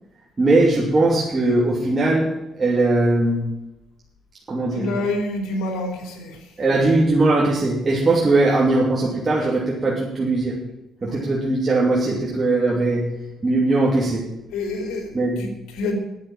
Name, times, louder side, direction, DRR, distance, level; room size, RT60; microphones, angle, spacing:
voice 1, 0.4-2.3 2.6-3.4 4.5-4.9 6.6-10.6 11.0-13.1 13.4-14.2 15.1-15.5, right 2 dB, 30° right, -5 dB, 2.9 m, -19 dB
voice 2, 4.7-6.4 11.1-11.3 14.5-15.1 15.4-16.0, left 2 dB, 90° left, 4 dB, 3.0 m, -27 dB
10.5 x 7.3 x 8.9 m, 0.90 s
cardioid pair, 90°, 0 cm